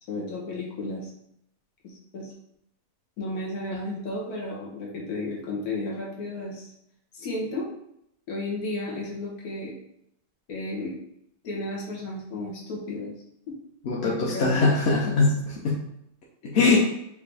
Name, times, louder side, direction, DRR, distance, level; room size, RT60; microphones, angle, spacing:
voice 1, 0.1-1.1 1.8-2.3 3.2-6.7 7.1-7.7 8.3-9.7 10.5-11.0 11.4-13.1 13.5-13.6 14.0-14.6, left 2 dB, 90° left, -4 dB, 1.5 m, -33 dB
voice 2, 13.9-15.8 16.5-16.8, left 3 dB, 55° left, -4 dB, 0.8 m, -22 dB
5.1 x 2.6 x 3.3 m, 0.78 s
omnidirectional pair, 1.5 m